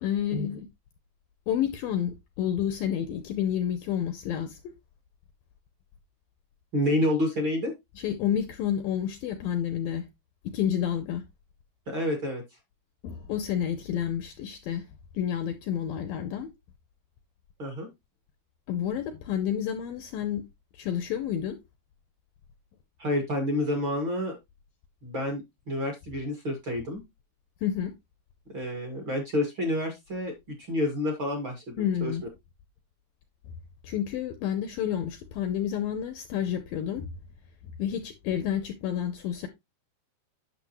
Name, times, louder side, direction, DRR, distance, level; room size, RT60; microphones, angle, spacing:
voice 1, 0.0-0.7 1.5-4.6 8.0-10.0 10.5-11.2 13.0-14.9 15.1-16.5 18.7-20.4 20.7-21.6 27.6-27.9 31.8-32.2 33.8-37.1 37.8-39.5, left 9 dB, 75° left, 2.1 m, -29 dB
voice 2, 6.7-7.7 11.9-12.4 17.6-17.9 23.0-24.4 25.0-25.4 25.7-27.0 28.5-30.3 30.6-31.8 32.0-32.1, left 1 dB, 40° right, 1.9 m, -28 dB
9.7 x 6.8 x 3.0 m
omnidirectional pair, 4.8 m